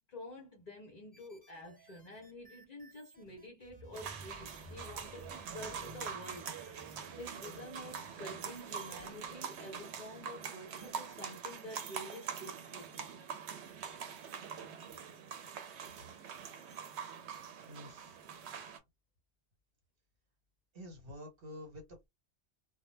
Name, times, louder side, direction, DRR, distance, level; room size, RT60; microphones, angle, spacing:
voice 1, 0.0-6.5 7.2-13.1, left 1 dB, 45° left, 0.6 m, -49 dB
sound 1, 1.1-6.7, right 1 dB, 10° right, 1.0 m, -63 dB
sound 2, 3.6-9.4 9.8-10.0 10.3-10.4, right 2 dB, 40° right, 0.4 m, -55 dB
sound 3, 3.9-18.8, right 7 dB, 80° right, 0.9 m, -44 dB
voice 2, 17.6-18.2 20.7-21.8, left 1 dB, 60° right, 1.2 m, -49 dB
2.1 x 2.1 x 3.1 m
omnidirectional pair, 1.1 m